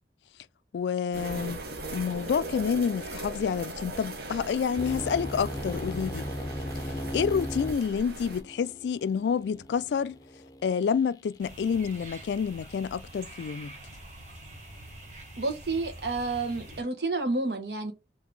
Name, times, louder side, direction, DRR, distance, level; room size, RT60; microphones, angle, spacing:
voice 1, 0.7-1.6 1.9-6.2 7.1-10.2 10.6-13.7, left 6 dB, 75° left, 0.3 m, -28 dB
sound 1, 1.1-8.4, right 2 dB, 60° right, 0.9 m, -39 dB
sound 2, 4.8-10.7, left 1 dB, 20° left, 0.5 m, -37 dB
sound 3, 11.4-16.8, right 1 dB, 40° right, 1.6 m, -46 dB
voice 2, 15.4-17.9, right 3 dB, 75° right, 1.1 m, -30 dB
3.6 x 2.8 x 4.7 m
head